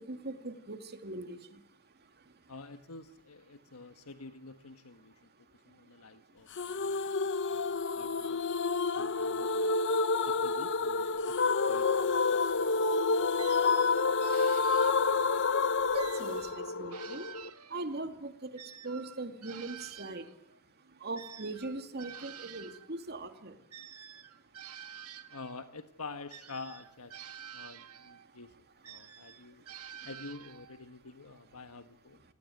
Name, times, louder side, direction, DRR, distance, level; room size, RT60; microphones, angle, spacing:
voice 1, 0.0-1.4 15.9-17.3 17.7-20.3 21.0-23.5, right 2 dB, 45° right, 7 dB, 2.6 m, -40 dB
voice 2, 2.5-6.9 7.2-8.4 8.9-9.8 10.2-12.4 25.3-27.2 27.5-28.5 28.8-29.6 30.0-32.2, left 3 dB, 75° left, 8 dB, 1.3 m, -48 dB
sound 1, 6.6-17.5, left 4 dB, 55° left, 1.0 m, -29 dB
sound 2, 13.4-15.4 16.0-18.0 18.6-22.9 23.7-25.7 26.3-28.3 28.8-30.8, right 9 dB, 85° right, 1.7 m, -49 dB
28.5 x 18.5 x 9.3 m, 0.80 s
head